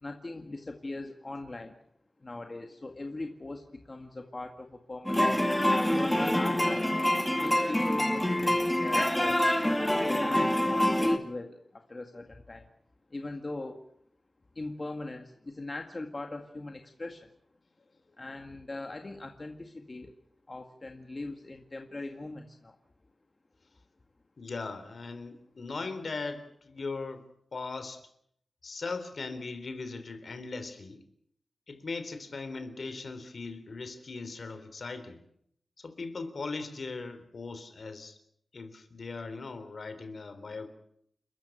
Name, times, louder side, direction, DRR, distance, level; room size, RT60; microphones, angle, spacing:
voice 1, 0.0-1.8 2.2-5.4 5.9-9.5 10.0-12.7 13.1-13.8 14.6-17.3 18.2-20.1 20.5-22.8, left 2 dB, 30° left, 4 dB, 1.9 m, -40 dB
sound 1, 5.1-11.2, left 1 dB, 5° left, 2.1 m, -26 dB
voice 2, 24.4-27.2 27.5-28.0 28.6-31.0 31.7-35.2 35.8-38.2 38.5-40.7, left 3 dB, 55° left, 10 dB, 3.5 m, -39 dB
29.5 x 13.5 x 9.1 m, 0.71 s
wide cardioid pair, 130°, 0 cm